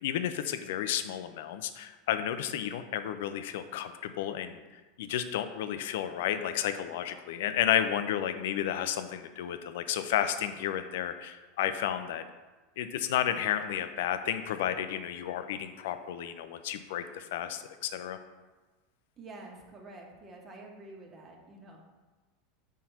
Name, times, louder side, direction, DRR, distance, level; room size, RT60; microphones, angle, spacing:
voice 1, 0.0-4.6 5.0-12.2 12.8-18.2, left 10 dB, 65° left, 10 dB, 0.5 m, -32 dB
voice 2, 19.2-21.8, right 2 dB, 30° right, 1 dB, 1.5 m, -48 dB
5.8 x 4.2 x 5.7 m, 1.2 s
figure-of-eight pair, 85°, 0 cm